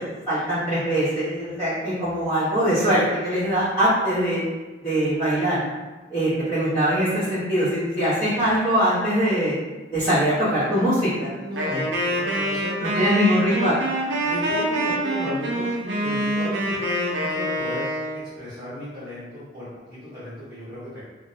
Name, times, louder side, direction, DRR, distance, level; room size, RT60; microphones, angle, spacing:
voice 1, 0.0-4.4 4.8-5.6 6.1-9.6 9.9-11.3 11.7-11.8 12.1-12.2 12.9-13.8, equal, 15° left, -18 dB, 0.9 m, -22 dB
voice 2, 11.3-13.3 14.2-17.8 18.4-21.0, equal, 15° right, -16 dB, 0.9 m, -34 dB
Wind instrument woodwind instrument, 11.6-18.2, right 1 dB, 75° right, 0.5 m, -25 dB
2.4 x 2.0 x 2.6 m, 1.2 s
head